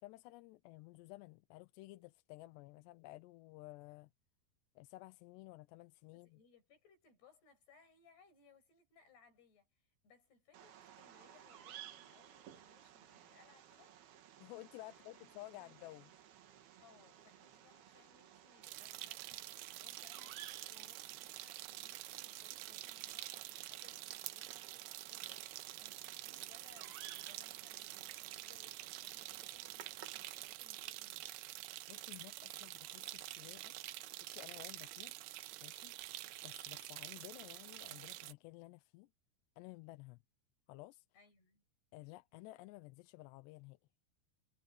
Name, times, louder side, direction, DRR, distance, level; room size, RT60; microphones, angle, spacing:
voice 1, 0.0-4.1 4.8-6.4 14.4-16.1 31.9-35.2 35.6-39.1 39.6-40.2 40.7-41.1 41.9-43.8, left 19 dB, 80° left, 2.8 m, -54 dB
voice 2, 6.1-14.0 14.9-15.2 15.6-15.9 16.8-25.5 25.8-31.3 41.1-41.6, left 5 dB, 65° left, 8.4 m, -67 dB
Bird vocalization bird call bird song, 10.5-30.5, right 10 dB, 65° right, 3.6 m, -58 dB
sound 1, 18.6-38.3, right 17 dB, 85° right, 3.0 m, -48 dB
omnidirectional pair, 5.1 m